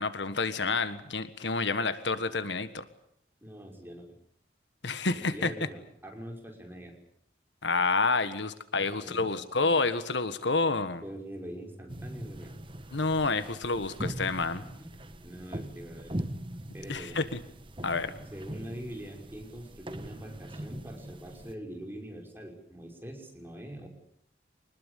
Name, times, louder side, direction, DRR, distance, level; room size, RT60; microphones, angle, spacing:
voice 1, 0.0-2.8 4.8-5.5 7.6-11.0 12.9-14.6 16.9-17.4 17.8-18.1, left 3 dB, 75° left, 12 dB, 1.6 m, -29 dB
voice 2, 3.4-4.1 4.9-6.9 9.0-9.4 11.0-12.5 14.6-15.0 15.2-16.2 16.7-17.2 18.3-23.9, right 1 dB, 10° right, 2 dB, 5.9 m, -43 dB
sound 1, 11.9-21.5, right 1 dB, 25° right, 1.5 m, -41 dB
26.0 x 20.5 x 8.4 m, 0.69 s
head